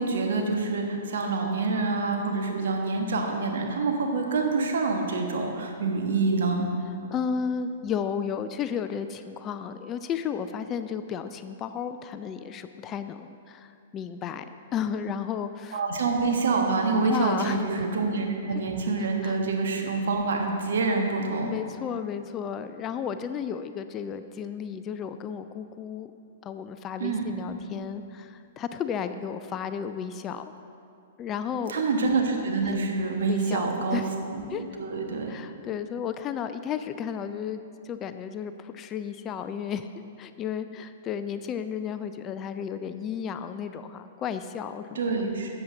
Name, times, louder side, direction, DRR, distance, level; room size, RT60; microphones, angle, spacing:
voice 1, 0.0-6.7 15.7-21.5 27.0-27.2 31.7-34.0 34.3-35.4 44.9-45.5, right 3 dB, 60° right, 2 dB, 1.3 m, -26 dB
voice 2, 7.1-14.4 14.7-15.8 17.1-17.6 18.5-18.6 19.2-19.4 21.4-26.1 26.4-30.5 31.2-31.8 32.6-32.8 33.2-33.7 33.9-34.1 34.5-34.8 35.3-39.9 40.2-45.0, left 7 dB, 25° left, 10 dB, 0.4 m, -33 dB
13.5 x 8.0 x 3.8 m, 2.5 s
figure-of-eight pair, 110°, 0 cm